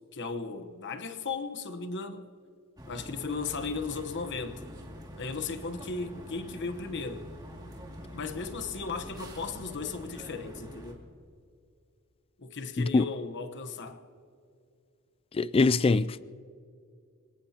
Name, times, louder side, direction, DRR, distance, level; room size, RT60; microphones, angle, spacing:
voice 1, 0.1-2.3 2.9-4.6 5.2-7.2 8.1-11.0 12.4-14.0, left 4 dB, 55° left, 1.1 m, -36 dB
sound 1, 2.8-10.9, equal, 20° right, 2.3 m, -45 dB
voice 2, 15.3-16.2, left 3 dB, 25° left, 0.3 m, -23 dB
26.0 x 18.0 x 2.9 m
head